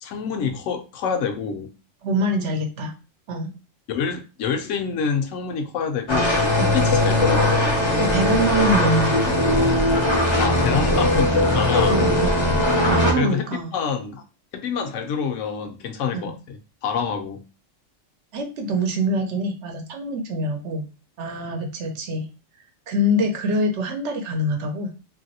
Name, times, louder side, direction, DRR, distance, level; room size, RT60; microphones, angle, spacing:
voice 1, 0.0-1.7 3.9-7.6 10.4-12.0 13.2-14.2 14.5-17.4, left 6 dB, 75° left, 5 dB, 0.9 m, -27 dB
voice 2, 2.0-2.9 3.3-3.5 6.6-6.9 8.0-9.3 11.8-13.8 16.1-16.3 18.3-20.9 21.2-22.2 22.9-24.9, equal, 65° right, 3 dB, 0.9 m, -25 dB
sound 1, 6.1-13.1, left 1 dB, 30° left, 0.5 m, -19 dB
2.9 x 2.6 x 2.7 m, 0.32 s
omnidirectional pair, 1.3 m